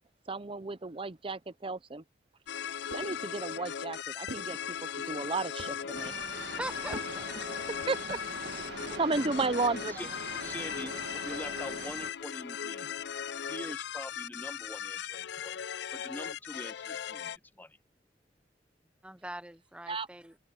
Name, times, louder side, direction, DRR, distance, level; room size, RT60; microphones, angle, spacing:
voice 1, 0.3-2.0 3.0-4.6 5.1-6.1 7.4-8.2 8.9-10.0 19.9-20.1, right 3 dB, 30° right, 0.7 m, -33 dB
sound 1, 2.5-17.4, left 8 dB, 65° left, 0.4 m, -38 dB
sound 2, 2.9-3.7 4.3-5.3 5.6-6.2 6.9-7.4, right 1 dB, 80° right, 2.4 m, -46 dB
sound 3, 5.9-12.1, right 4 dB, 65° right, 1.6 m, -43 dB
voice 2, 6.6-7.3 8.9-9.0 19.0-20.4, right 1 dB, 5° right, 1.0 m, -41 dB
voice 3, 10.4-13.0 13.4-15.6 15.9-17.8, left 1 dB, 10° left, 0.7 m, -44 dB
open air
head